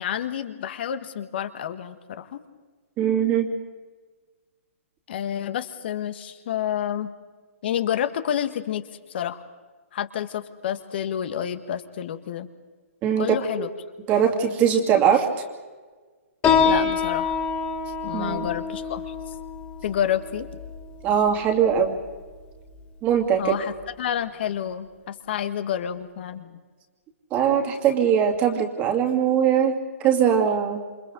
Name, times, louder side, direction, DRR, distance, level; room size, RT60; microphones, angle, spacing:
voice 1, 0.0-2.4 5.1-7.1 7.6-8.8 9.1-9.4 9.9-12.5 13.2-13.7 16.6-17.3 18.0-19.1 19.8-20.5 23.4-26.6, left 10 dB, 45° left, 10 dB, 1.7 m, -29 dB
voice 2, 3.0-3.5 13.0-13.3 13.6-13.7 14.1-15.2 18.1-18.5 21.0-22.0 23.0-23.6 27.3-29.7 30.0-30.8, right 8 dB, 20° right, 4 dB, 2.5 m, -21 dB
Piano, 16.4-23.5, left 6 dB, 20° left, 3.3 m, -27 dB
28.0 x 27.5 x 3.9 m, 1.4 s
hypercardioid pair, 160°, 8 cm